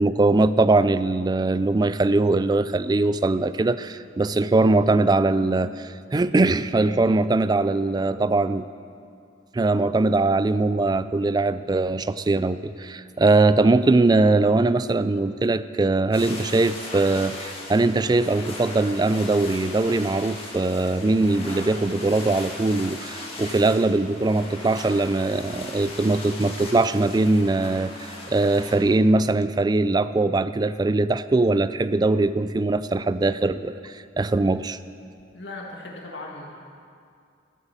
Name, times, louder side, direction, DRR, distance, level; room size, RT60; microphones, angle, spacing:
voice 1, 0.0-8.7 9.5-34.8, right 2 dB, 20° right, 14 dB, 0.3 m, -21 dB
sound 1, 16.1-28.8, left 2 dB, 30° left, 2.2 m, -38 dB
voice 2, 35.3-36.6, left 2 dB, 75° left, -2 dB, 1.8 m, -38 dB
13.5 x 8.9 x 7.4 m, 2.4 s
head